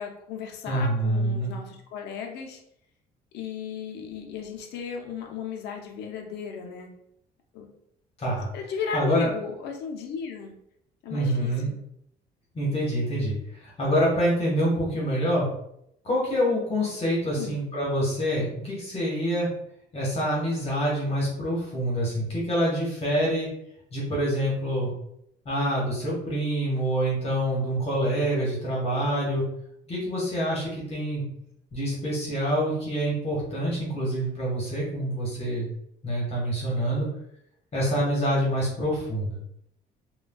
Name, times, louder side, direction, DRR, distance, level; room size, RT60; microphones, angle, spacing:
voice 1, 0.0-2.6 3.3-6.9 7.5-7.7 8.5-10.6 11.0-11.7 17.3-17.6, left 6 dB, 80° left, 2 dB, 0.6 m, -35 dB
voice 2, 0.6-1.5 8.2-8.5 8.9-9.3 11.1-11.7 12.5-13.3 13.6-15.5 16.0-19.5 19.9-23.5 23.9-24.9 25.4-29.4 29.9-31.2 31.7-35.7 36.0-37.1 37.7-39.4, equal, 35° left, -4 dB, 1.1 m, -26 dB
3.3 x 2.2 x 2.2 m, 0.74 s
cardioid pair, 110°, 17 cm